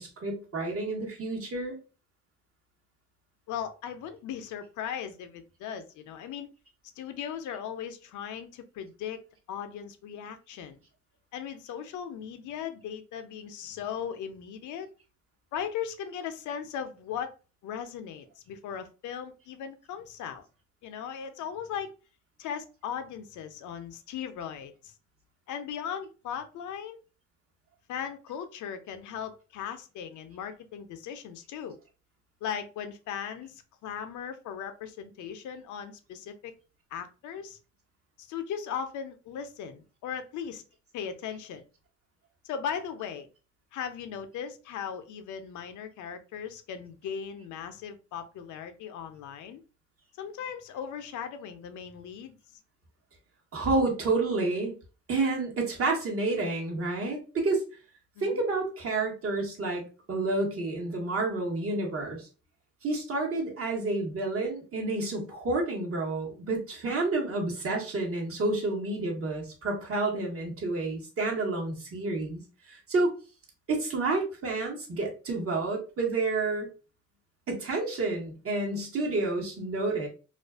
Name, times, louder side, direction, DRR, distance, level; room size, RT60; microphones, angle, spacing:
voice 1, 0.0-1.8 53.5-54.7 55.1-57.6 58.2-59.8 60.1-62.3 62.8-72.4 72.7-73.1 73.7-76.7 77.5-80.1, right 3 dB, 50° right, 0 dB, 1.0 m, -29 dB
voice 2, 3.5-6.5 7.0-9.2 9.5-10.8 11.3-14.9 15.5-17.3 17.6-20.5 20.8-21.9 22.4-24.9 25.5-27.0 27.9-31.8 32.4-36.5 36.9-37.6 38.2-40.6 40.9-41.6 42.4-43.3 43.7-49.6 50.2-52.6 58.2-58.4, left 8 dB, 75° left, 9 dB, 0.5 m, -38 dB
2.4 x 2.3 x 2.3 m, 0.33 s
cardioid pair, 90°, 30 cm